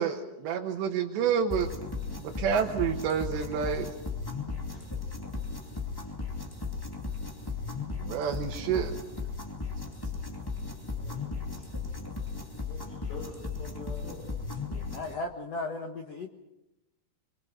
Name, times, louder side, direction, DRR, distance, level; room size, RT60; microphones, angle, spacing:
voice 1, 0.0-1.7 2.2-3.9 8.0-9.0, right 7 dB, 75° right, 0 dB, 3.4 m, -29 dB
sound 1, 1.5-15.1, left 4 dB, 15° left, 0.8 m, -36 dB
voice 2, 4.7-5.0 11.0-11.6 12.0-12.1 12.6-14.3, left 3 dB, 50° left, -3 dB, 8.4 m, -46 dB
voice 3, 14.7-16.3, left 2 dB, 75° left, 4 dB, 1.5 m, -36 dB
25.0 x 24.0 x 6.0 m, 0.95 s
omnidirectional pair, 5.2 m